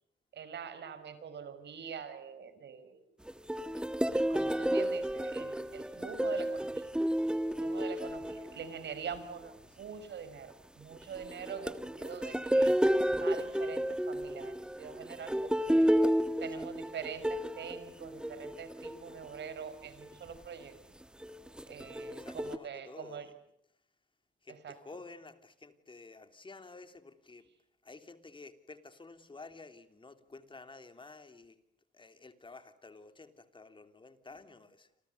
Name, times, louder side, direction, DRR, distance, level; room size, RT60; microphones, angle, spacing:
voice 1, 0.3-3.0 4.1-6.9 7.6-12.7 13.1-15.9 16.4-20.7 21.7-23.3 24.5-24.8, right 7 dB, 60° right, 12 dB, 5.3 m, -44 dB
sound 1, 3.3-9.1 10.9-19.2 19.8-20.1 21.2-22.6, equal, 5° right, 1.3 m, -31 dB
voice 2, 8.2-8.7 9.8-9.9 16.6-16.7 22.2-23.3 24.4-27.5 27.8-31.6 31.9-34.9, left 3 dB, 25° left, 8 dB, 3.2 m, -52 dB
28.5 x 27.5 x 6.9 m, 0.77 s
cardioid pair, 90°, 20 cm